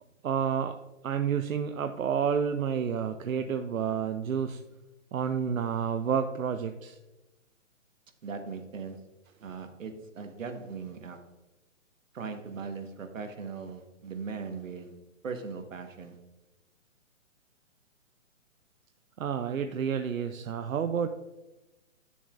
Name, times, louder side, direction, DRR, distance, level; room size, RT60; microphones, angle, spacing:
voice 1, 0.2-0.8 1.0-4.6 5.1-7.0 19.2-21.1, right 7 dB, 90° right, 7 dB, 0.6 m, -29 dB
voice 2, 8.2-9.1 9.4-11.3 12.1-15.0 15.2-16.2, right 5 dB, 75° right, 6 dB, 1.4 m, -39 dB
10.5 x 6.9 x 2.5 m, 1.0 s
hypercardioid pair, 150°, 40 cm